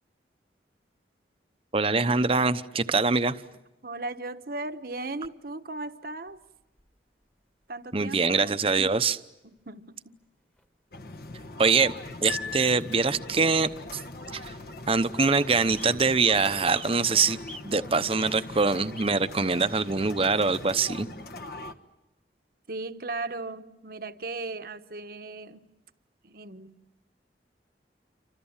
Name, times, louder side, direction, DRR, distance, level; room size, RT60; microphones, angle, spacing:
voice 1, 1.7-3.4 7.9-9.2 11.6-11.9 12.2-14.0 14.3-14.5 14.9-17.4 17.6-21.1, right 4 dB, 30° right, 0.8 m, -24 dB
voice 2, 3.8-6.4 7.7-8.5 9.7-10.2 22.7-25.6 26.2-26.8, right 2 dB, 55° right, 1.1 m, -37 dB
sound 1, 6.3-7.2 8.4-8.5 8.7-8.8 9.5-9.8 10.1-10.2 10.5-10.7 11.0-11.3 12.2-12.3 12.7-12.8 13.9-14.0 14.2-14.7 15.2-15.3 15.7-16.0 16.2-16.9 17.5-17.9 18.2-18.4 18.9-19.1 19.9-20.0, left 1 dB, 5° left, 1.4 m, -46 dB
sound 2, 10.9-21.7, left 2 dB, 55° left, 1.3 m, -41 dB
Piano, 12.3-13.5, left 7 dB, 85° left, 5.2 m, -38 dB
29.0 x 25.5 x 7.3 m
head